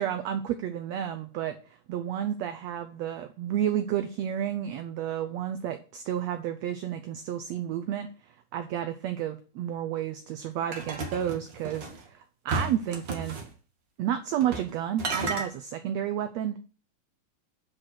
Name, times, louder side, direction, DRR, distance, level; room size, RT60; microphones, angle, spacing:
voice 1, 0.0-13.4 14.0-16.6, right 10 dB, 85° right, 9 dB, 1.5 m, -31 dB
sound 1, 10.7-12.0 12.5-13.5 14.4-14.7 15.0-15.5, right 3 dB, 50° right, 1.4 m, -33 dB
9.8 x 4.7 x 6.1 m, 0.37 s
omnidirectional pair, 3.8 m